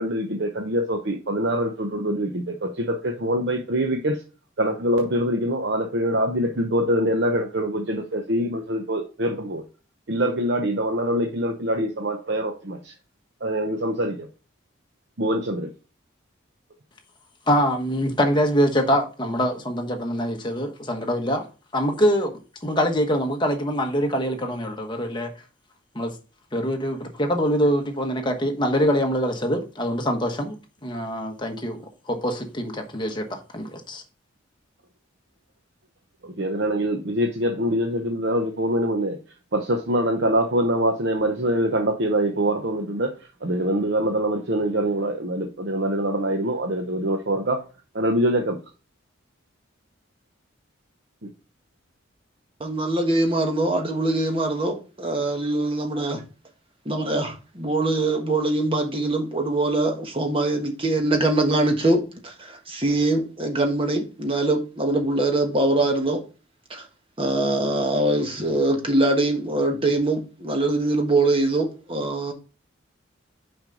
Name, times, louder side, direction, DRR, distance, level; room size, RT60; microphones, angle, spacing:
voice 1, 0.0-4.2 4.6-9.6 10.1-12.9 13.4-14.3 15.2-15.7 36.2-39.2 39.5-43.1 43.4-47.6 47.9-48.6 51.2-51.3, right 1 dB, 55° right, 0.8 m, -24 dB
voice 2, 17.5-21.4 21.7-22.3 22.6-25.3 25.9-26.1 26.5-30.5 30.8-31.8 32.1-34.0, equal, 25° left, 1.1 m, -24 dB
voice 3, 52.6-56.2 56.8-66.2 66.7-66.9 67.2-72.3, right 2 dB, 25° right, 1.4 m, -23 dB
6.0 x 5.3 x 3.8 m
head